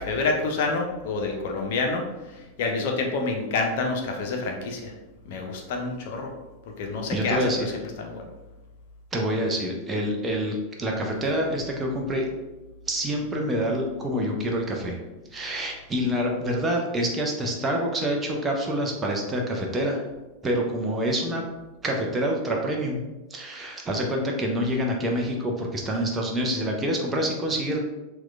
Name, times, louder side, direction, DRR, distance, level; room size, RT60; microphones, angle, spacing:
voice 1, 0.0-2.1 2.3-4.9 5.3-6.3 6.8-7.7 8.0-8.3, left 3 dB, 50° left, 2 dB, 0.6 m, -28 dB
voice 2, 7.1-7.7 9.1-12.2 12.9-15.0 15.3-20.0 20.4-21.4 21.8-23.0 23.3-27.8, equal, 15° right, 0 dB, 0.6 m, -27 dB
5.9 x 2.3 x 2.3 m, 1.1 s
figure-of-eight pair, 90°, 0 cm